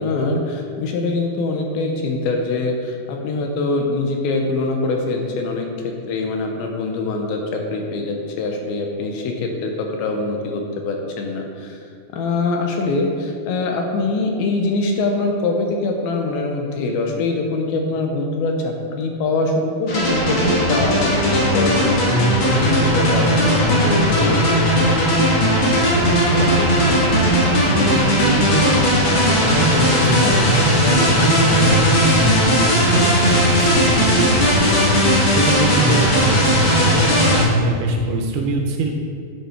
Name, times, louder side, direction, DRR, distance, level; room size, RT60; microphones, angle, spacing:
voice 1, 0.0-11.8 12.1-24.4, left 3 dB, 75° left, 2 dB, 2.4 m, -23 dB
sound 1, 19.9-37.4, equal, 45° left, 1.7 m, -17 dB
voice 2, 25.6-28.8 29.2-34.9 35.3-38.9, right 3 dB, 80° right, 2 dB, 2.5 m, -24 dB
11.0 x 5.5 x 4.4 m, 2.3 s
omnidirectional pair, 4.9 m